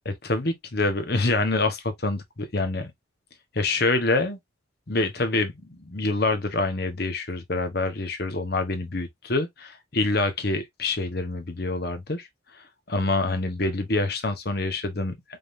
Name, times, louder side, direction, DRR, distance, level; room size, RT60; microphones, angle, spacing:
voice 1, 0.0-2.9 3.5-4.4 4.9-12.3 12.9-15.4, left 2 dB, 50° left, 1.1 m, -26 dB
5.1 x 3.8 x 2.5 m
head